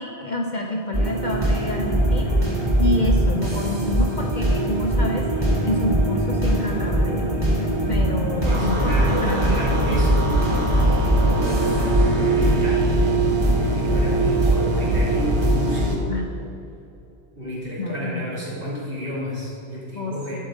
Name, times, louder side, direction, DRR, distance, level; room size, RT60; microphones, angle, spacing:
voice 1, 0.0-5.3 5.6-7.3 7.9-9.6 9.9-10.1 16.0-16.2 17.8-18.3 19.9-20.4, left 1 dB, 50° left, 1 dB, 0.7 m, -28 dB
sound 1, 0.9-15.9, right 1 dB, 25° right, 1.2 m, -21 dB
voice 2, 8.4-12.9 13.6-16.1 17.4-20.4, equal, 50° right, -7 dB, 2.7 m, -31 dB
sound 2, 8.5-16.0, equal, 70° right, 1.2 m, -26 dB
11.0 x 7.2 x 3.7 m, 2.8 s
omnidirectional pair, 1.2 m